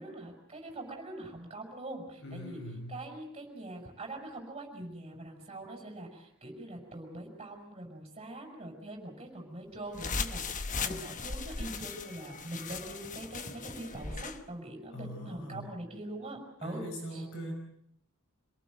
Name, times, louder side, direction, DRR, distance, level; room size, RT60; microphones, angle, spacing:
voice 1, 0.0-2.6 2.9-17.2, right 1 dB, 25° right, 1 dB, 6.7 m, -43 dB
voice 2, 2.2-2.9 14.9-15.7 16.6-17.5, equal, 60° left, 3 dB, 5.4 m, -41 dB
sound 1, 9.9-14.4, left 4 dB, 35° left, 1.1 m, -38 dB
27.0 x 18.5 x 7.9 m, 0.73 s
head